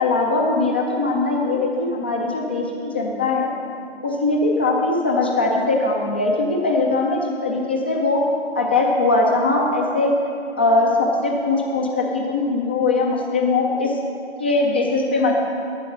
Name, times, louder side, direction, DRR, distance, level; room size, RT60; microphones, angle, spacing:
voice 1, 0.0-3.5 4.0-8.2 8.6-10.1 10.6-14.0 14.4-15.4, left 3 dB, 10° left, -1 dB, 0.3 m, -20 dB
12.0 x 8.2 x 6.0 m, 2.6 s
hypercardioid pair, 140°, 35 cm